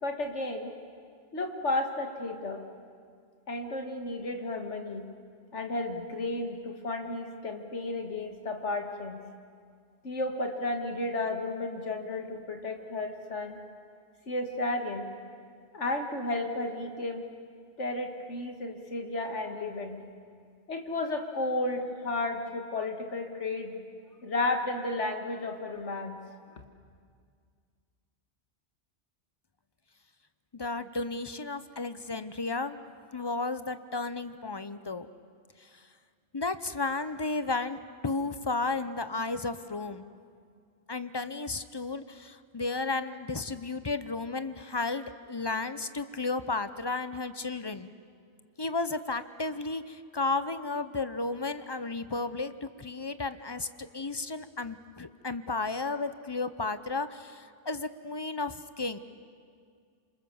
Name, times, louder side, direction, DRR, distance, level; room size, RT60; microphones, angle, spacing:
voice 1, 0.0-0.7 1.3-2.6 3.5-5.0 5.5-9.2 10.0-13.6 14.3-15.1 15.7-17.3 17.8-20.0 20.7-23.8 24.2-26.4, left 2 dB, 90° left, 4 dB, 2.3 m, -33 dB
voice 2, 30.5-32.8 33.1-35.1 35.6-35.9 36.3-40.1 40.9-47.9 48.6-59.0, left 3 dB, 25° left, 12 dB, 0.7 m, -33 dB
27.0 x 26.5 x 7.1 m, 2.1 s
omnidirectional pair, 1.2 m